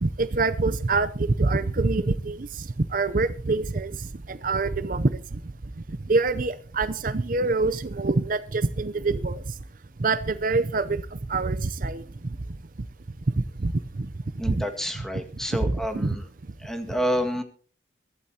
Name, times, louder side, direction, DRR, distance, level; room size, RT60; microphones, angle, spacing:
voice 1, 0.0-3.9 4.3-5.1 6.1-9.4 10.0-11.0 11.3-12.0 13.4-13.7 14.5-14.6 15.7-16.2, right 3 dB, 45° right, 13 dB, 0.6 m, -25 dB
voice 2, 14.4-16.1 16.6-17.4, equal, 5° left, 5 dB, 1.8 m, -28 dB
23.0 x 12.0 x 2.8 m, 0.42 s
head